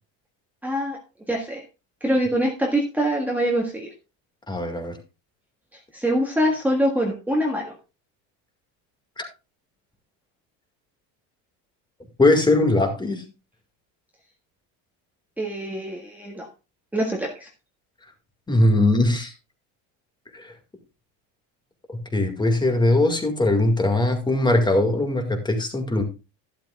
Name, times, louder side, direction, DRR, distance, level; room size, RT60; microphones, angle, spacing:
voice 1, 0.6-1.0 1.3-1.6 2.0-3.9 5.9-7.7 15.4-16.5 16.9-17.5, equal, 5° right, -1 dB, 1.6 m, -24 dB
voice 2, 4.5-5.0 9.2-9.3 12.2-13.2 18.5-19.3 20.3-20.5 22.1-26.0, left 2 dB, 10° left, 4 dB, 2.0 m, -20 dB
12.0 x 12.0 x 2.4 m, 0.28 s
cardioid pair, 140°, 36 cm